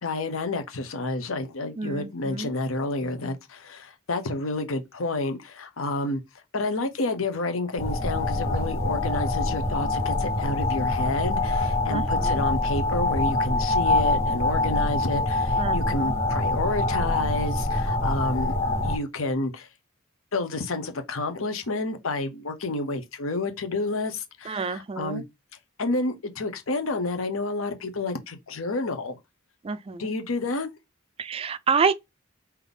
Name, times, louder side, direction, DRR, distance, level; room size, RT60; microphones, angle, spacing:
voice 1, 0.0-6.2 6.5-18.6 18.8-19.7 20.3-25.2 25.8-29.2 30.0-30.7, left 2 dB, 85° left, 0.9 m, -30 dB
voice 2, 1.8-2.5 11.9-12.4 15.6-16.1 24.4-25.2 29.6-30.1 31.2-31.9, right 5 dB, 30° right, 0.3 m, -28 dB
sound 1, 7.8-19.0, left 2 dB, 30° left, 1.8 m, -25 dB
4.0 x 2.8 x 3.4 m
head